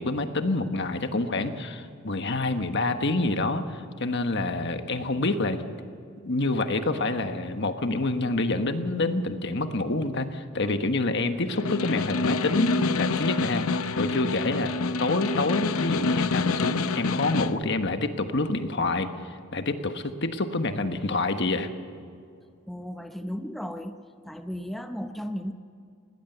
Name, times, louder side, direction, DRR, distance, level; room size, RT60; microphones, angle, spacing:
voice 1, 0.0-5.6 6.2-14.7 15.0-21.7, left 2 dB, 55° left, 8 dB, 1.3 m, -27 dB
Snare drum, 11.5-17.6, left 3 dB, 80° left, 0.7 m, -27 dB
voice 2, 22.7-24.0 24.2-25.5, equal, ahead, 6 dB, 0.7 m, -35 dB
20.0 x 18.5 x 8.0 m, 2.4 s
head